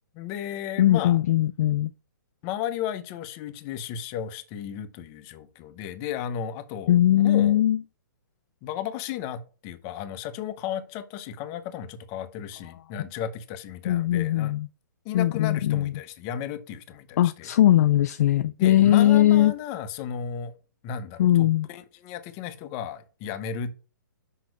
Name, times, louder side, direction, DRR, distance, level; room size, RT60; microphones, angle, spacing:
voice 1, 0.1-1.2 2.4-7.6 8.6-14.5 15.0-17.5 18.6-20.5 20.8-23.7, left 9 dB, 25° left, 0.8 m, -34 dB
voice 2, 0.8-1.9 6.9-7.8 13.9-14.7 15.1-15.9 17.2-19.5 21.2-21.7, left 12 dB, 50° left, 0.3 m, -20 dB
6.1 x 5.5 x 4.8 m
hypercardioid pair, 155°, 11 cm